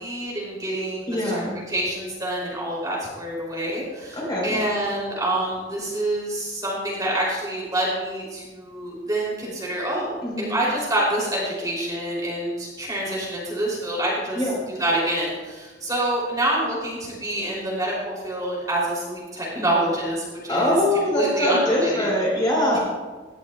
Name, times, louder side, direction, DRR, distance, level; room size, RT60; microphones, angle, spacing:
voice 1, 0.0-1.4 1.7-14.4 14.7-20.7 21.1-22.1 22.7-22.8, right 1 dB, 20° right, -4 dB, 2.9 m, -27 dB
voice 2, 1.1-1.6 4.2-4.6 10.2-10.5 14.3-14.6 20.5-22.8, left 1 dB, 25° left, -4 dB, 3.9 m, -23 dB
17.5 x 11.0 x 2.2 m, 1.3 s
head